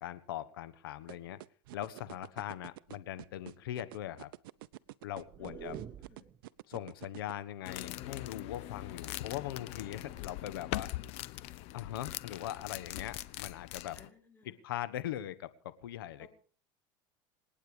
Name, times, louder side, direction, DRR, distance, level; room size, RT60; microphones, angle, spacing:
voice 1, 0.0-1.4 1.7-4.3 5.0-5.8 6.7-10.9 11.7-14.0 14.6-16.3, left 12 dB, 90° left, 14 dB, 1.4 m, -40 dB
sound 1, 1.1-7.3, right 17 dB, 85° right, 0.7 m, -47 dB
sound 2, 5.1-6.4 8.2-9.3 10.1-10.6, right 10 dB, 40° right, 1.3 m, -49 dB
voice 2, 5.4-6.2 13.9-14.5 16.2-16.3, left 3 dB, 15° left, 2 dB, 5.0 m, -55 dB
sound 3, 7.6-14.1, left 16 dB, 65° left, 0.9 m, -42 dB
27.5 x 9.2 x 5.0 m, 0.41 s
supercardioid pair, 105°, 11 cm